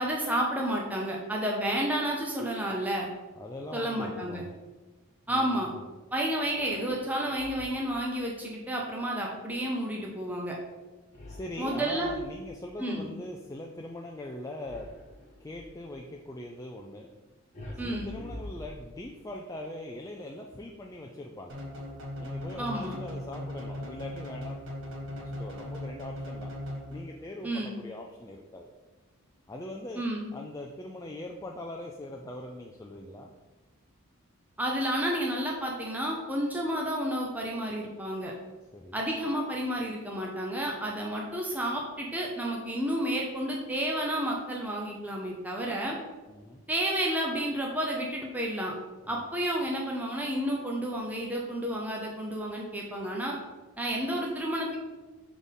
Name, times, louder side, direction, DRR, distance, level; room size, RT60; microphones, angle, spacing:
voice 1, 0.0-3.1 3.7-4.4 5.3-5.7 6.1-10.6 11.6-12.1 12.8-13.1 17.8-18.1 22.6-23.0 27.4-27.8 30.0-30.3 34.6-38.3 38.9-45.9 46.7-48.7 49.1-53.4 53.8-54.8, right 1 dB, 5° right, -2 dB, 0.8 m, -31 dB
voice 2, 3.4-4.6 5.3-5.8 11.3-14.9 15.4-17.1 17.8-21.6 22.2-24.6 25.2-26.5 26.9-28.7 29.5-30.0 30.3-33.3 38.7-39.0 46.3-46.6 49.1-49.3, left 1 dB, 15° left, 0 dB, 0.4 m, -41 dB
sound 1, 6.4-8.0 11.1-12.7 14.6-15.8 17.5-19.2, left 1 dB, 30° left, 1.4 m, -45 dB
sound 2, 21.5-27.3, left 1 dB, 60° right, 1.3 m, -38 dB
6.2 x 3.7 x 5.3 m, 1.2 s
head